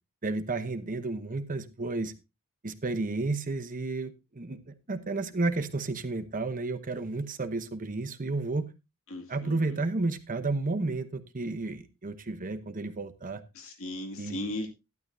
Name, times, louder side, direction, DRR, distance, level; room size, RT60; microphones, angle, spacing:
voice 1, 0.2-2.1 2.6-8.7 9.3-13.4 14.2-14.5, right 3 dB, 40° right, 10 dB, 0.9 m, -32 dB
voice 2, 9.1-9.8 13.5-14.7, left 1 dB, 65° left, 3 dB, 2.3 m, -37 dB
12.0 x 12.0 x 2.7 m, 0.25 s
head